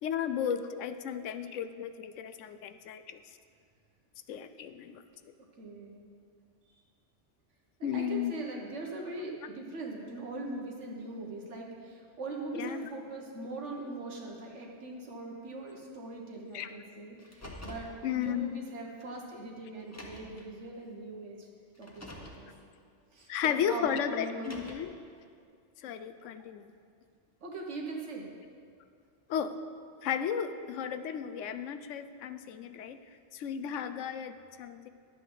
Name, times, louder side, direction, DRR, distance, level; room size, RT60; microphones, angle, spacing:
voice 1, 0.0-3.2 4.3-5.0 7.8-8.4 12.6-12.9 16.5-16.7 18.0-18.6 23.3-24.9 25.8-26.7 29.3-29.5 30.0-33.0 33.3-34.9, left 8 dB, 85° left, 10 dB, 0.9 m, -34 dB
voice 2, 5.6-6.0 7.8-21.5 21.8-22.5 23.1-24.6 27.4-28.3, right 2 dB, 75° right, 0 dB, 1.6 m, -41 dB
Car, 17.2-17.9 19.0-19.1 19.8-20.4 21.7-22.4 24.2-25.0, left 1 dB, 15° left, 0.9 m, -46 dB
12.0 x 8.1 x 3.9 m, 2.2 s
omnidirectional pair, 1.2 m